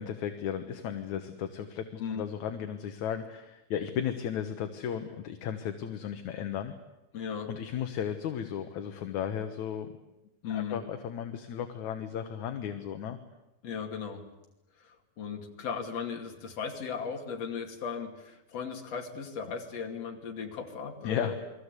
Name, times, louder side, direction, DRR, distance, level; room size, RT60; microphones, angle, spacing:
voice 1, 0.0-6.7 7.5-9.9 10.5-13.2 21.0-21.3, left 9 dB, 65° left, 7 dB, 2.5 m, -35 dB
voice 2, 7.1-7.5 10.4-10.8 13.6-14.2 14.8-21.4, left 6 dB, 50° left, 3 dB, 3.5 m, -37 dB
29.5 x 22.0 x 8.3 m, 0.94 s
omnidirectional pair, 3.8 m